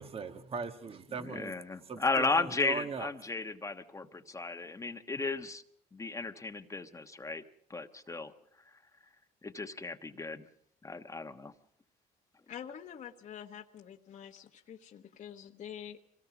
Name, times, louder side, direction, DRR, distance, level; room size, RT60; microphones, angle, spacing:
voice 1, 0.0-1.5 1.8-3.1, right 5 dB, 35° right, 9 dB, 1.4 m, -39 dB
voice 2, 1.2-5.6 5.9-7.4 7.7-8.3 9.4-10.4 10.8-11.5, left 3 dB, 20° left, 8 dB, 1.2 m, -35 dB
voice 3, 12.5-16.0, left 9 dB, 50° left, 2 dB, 1.3 m, -46 dB
25.5 x 18.5 x 6.0 m, 0.71 s
cardioid pair, 110°, 17 cm